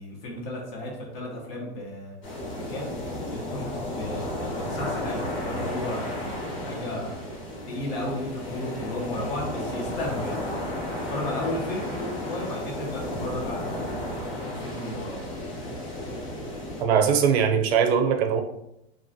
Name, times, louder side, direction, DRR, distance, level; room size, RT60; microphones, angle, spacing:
voice 1, 0.0-2.2 2.7-2.9 3.3-7.3 7.6-10.5 11.1-14.0 14.4-15.2, left 1 dB, 60° left, -2 dB, 1.2 m, -34 dB
sound 1, 2.2-16.8, left 1 dB, 35° left, 1.2 m, -33 dB
voice 2, 16.8-18.4, right 7 dB, 65° right, 5 dB, 0.6 m, -21 dB
2.9 x 2.5 x 2.6 m, 0.84 s
hypercardioid pair, 110°, 34 cm